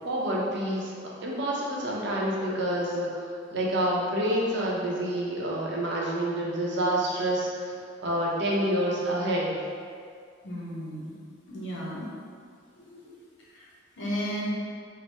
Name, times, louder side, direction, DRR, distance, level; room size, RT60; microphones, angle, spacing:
voice 1, 0.0-7.7 8.0-9.6, right 1 dB, 60° right, -4 dB, 0.6 m, -28 dB
voice 2, 10.4-11.1 11.5-12.0 12.8-13.2 13.5-13.6 14.0-14.5, equal, 65° left, -5 dB, 0.8 m, -34 dB
3.3 x 2.0 x 4.1 m, 2.2 s
head